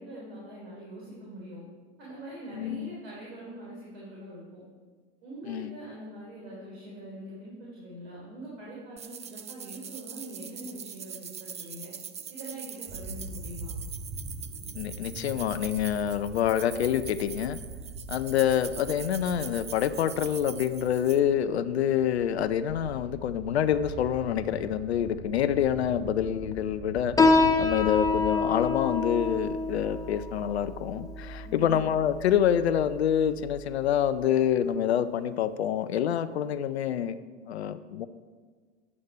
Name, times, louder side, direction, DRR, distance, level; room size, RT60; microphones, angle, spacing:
voice 1, 0.0-1.6 2.0-4.6 5.2-11.9 12.3-13.7 31.4-31.8, right 1 dB, 70° right, -5 dB, 3.4 m, -43 dB
voice 2, 2.6-2.9 5.5-5.7 14.7-17.6 18.1-37.2 37.5-38.1, left 10 dB, 85° left, 13 dB, 0.6 m, -27 dB
sound 1, 9.0-21.2, right 8 dB, 20° right, 0.6 m, -43 dB
sound 2, 12.9-28.3, right 2 dB, 55° right, 2.4 m, -42 dB
Piano, 27.2-34.2, left 3 dB, 10° left, 1.1 m, -28 dB
9.8 x 8.0 x 5.4 m, 1.5 s
hypercardioid pair, 95°, 32 cm